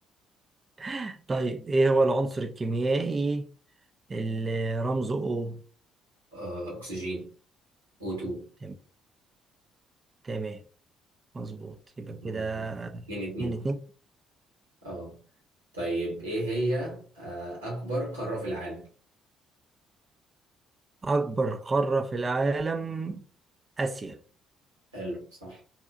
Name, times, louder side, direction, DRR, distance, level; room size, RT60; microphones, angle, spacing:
voice 1, 0.8-3.4 4.1-5.6 8.6-8.7 10.2-10.6 11.3-13.0 13.4-13.8 21.0-23.2 23.8-24.2, right 3 dB, 30° right, 0.5 m, -28 dB
voice 2, 6.3-7.3 8.0-8.5 12.2-12.7 13.1-13.6 14.8-15.2 15.7-18.9 24.9-25.6, right 1 dB, 85° right, 1.3 m, -33 dB
2.8 x 2.3 x 2.3 m
figure-of-eight pair, 45°, 0 cm